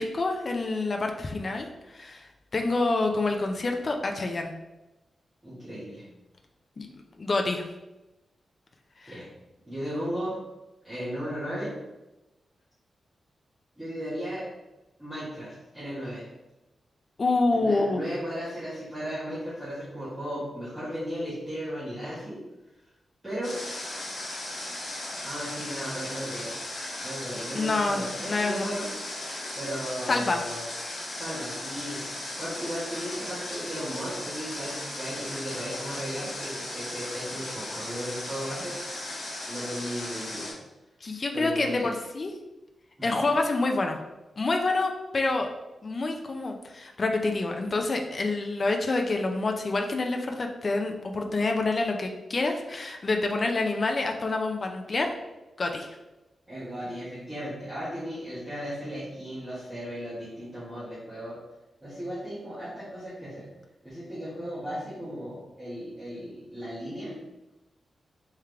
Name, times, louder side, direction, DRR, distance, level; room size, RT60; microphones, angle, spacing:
voice 1, 0.0-4.5 6.8-6.9 7.2-7.7 9.0-9.1 17.2-18.0 27.5-28.6 30.1-30.4 41.0-42.3 43.0-44.0 44.4-45.5 45.8-55.1 55.6-56.0, left 3 dB, 35° left, 3 dB, 0.4 m, -27 dB
voice 2, 5.4-6.0 9.1-9.3 9.7-10.3 10.8-11.7 13.7-14.4 15.0-16.2 17.5-22.4 23.2-23.5 25.2-26.6 27.0-28.9 29.5-30.6 31.1-38.7 39.5-40.5 41.3-41.9 43.0-43.2 56.5-61.4 61.8-63.4 63.8-67.2, equal, 15° right, -13 dB, 1.4 m, -36 dB
Water, 23.4-40.5, left 1 dB, 70° left, 1.3 m, -37 dB
3.5 x 3.3 x 3.3 m, 1.0 s
wide cardioid pair, 160°, 0 cm